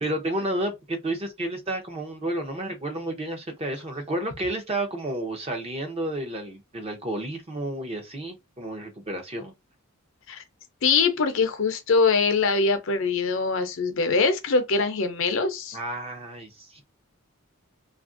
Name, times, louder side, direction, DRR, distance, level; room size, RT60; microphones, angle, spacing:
voice 1, 0.0-9.5 15.7-16.8, right 1 dB, 25° right, 0.6 m, -31 dB
voice 2, 10.8-15.8, left 4 dB, 60° left, 0.5 m, -23 dB
2.8 x 2.5 x 2.5 m
head